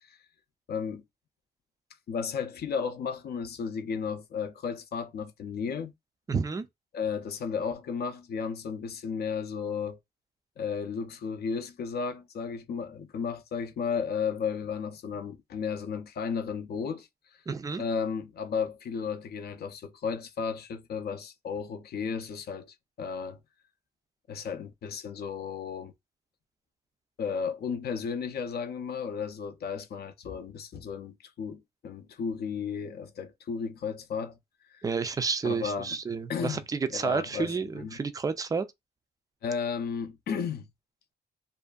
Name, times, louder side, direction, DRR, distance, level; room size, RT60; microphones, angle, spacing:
voice 1, 0.7-1.0 2.1-5.9 6.9-10.0 10.6-17.1 17.8-23.4 24.3-25.9 27.2-34.4 34.7-34.8 35.4-36.0 36.3-38.0 39.4-40.7, left 6 dB, 60° left, 0.4 m, -34 dB
voice 2, 6.3-6.7 17.5-17.8 34.8-38.7, right 5 dB, 20° right, 0.3 m, -30 dB
2.5 x 2.4 x 2.2 m
cardioid pair, 105°, 18 cm